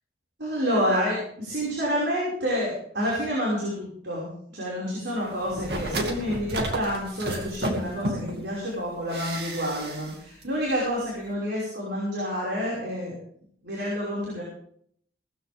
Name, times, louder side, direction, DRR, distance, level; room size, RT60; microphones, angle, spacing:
voice 1, 0.4-13.2 13.6-14.4, equal, 85° right, -5 dB, 5.7 m, -28 dB
sound 1, 5.4-8.5 9.1-10.2 10.4-10.5, right 1 dB, 65° right, 2.3 m, -32 dB
18.5 x 14.0 x 3.6 m, 0.62 s
head